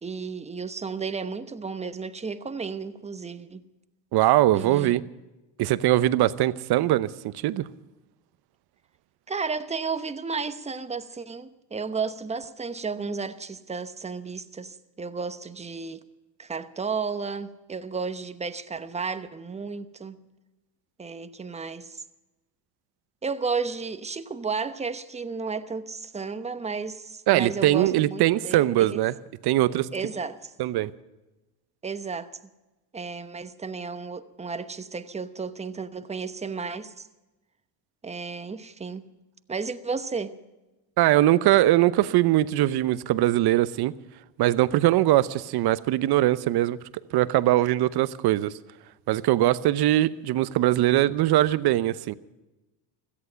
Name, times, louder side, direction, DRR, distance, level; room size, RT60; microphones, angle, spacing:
voice 1, 0.0-3.6 4.5-5.1 9.3-16.0 16.4-20.2 21.0-22.0 23.2-29.0 29.9-30.5 31.8-32.3 32.9-37.1 38.0-39.1 39.5-40.4, right 5 dB, 15° right, 1.0 m, -33 dB
voice 2, 4.1-5.0 5.6-7.7 27.3-29.1 29.4-29.9 30.6-30.9 41.0-43.9 44.4-46.8 47.1-48.5 49.1-52.1, right 15 dB, 55° right, 0.9 m, -21 dB
17.0 x 14.0 x 5.8 m
supercardioid pair, 100°, 47 cm